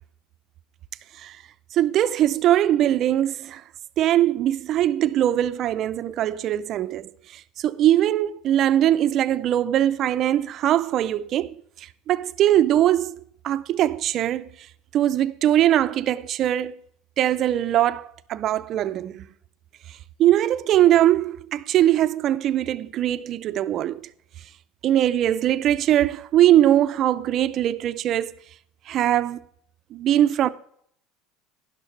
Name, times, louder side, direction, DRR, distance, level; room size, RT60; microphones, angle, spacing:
voice 1, 1.7-3.6 4.0-14.5 14.9-16.8 17.2-19.3 19.9-24.0 24.8-28.3 28.9-29.4 29.9-30.5, right 12 dB, 35° right, 0.4 m, -21 dB
11.5 x 11.5 x 3.2 m
cardioid pair, 170°, 0 cm